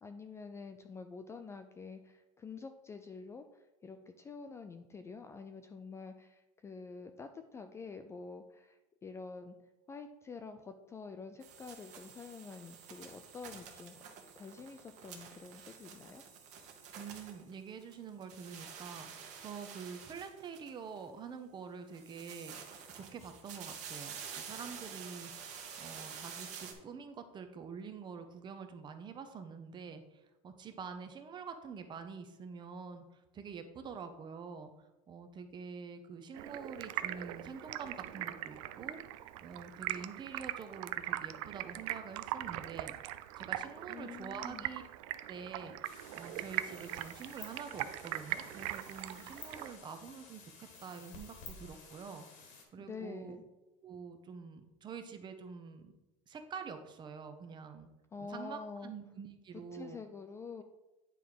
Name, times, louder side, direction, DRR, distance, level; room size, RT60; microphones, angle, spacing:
voice 1, 0.0-9.6 9.9-14.0 14.4-16.2 43.9-44.7 52.8-53.4 58.1-58.9 59.5-60.6, left 4 dB, 15° left, 7 dB, 0.3 m, -47 dB
sound 1, 11.4-17.9 18.2-21.0 21.9-26.7, right 7 dB, 45° right, 1.4 m, -49 dB
voice 2, 17.0-22.6 22.9-25.3 25.8-34.7 35.1-43.0 43.4-44.8 45.3-53.4 53.8-55.9 56.3-57.9 58.2-60.0, right 6 dB, 30° right, 8 dB, 0.8 m, -47 dB
Stream, 36.3-49.8, right 14 dB, 80° right, 0.5 m, -41 dB
sound 2, 45.8-52.6, left 4 dB, 55° left, 1.7 m, -53 dB
9.2 x 3.7 x 4.7 m, 1.0 s
cardioid pair, 140°, 16 cm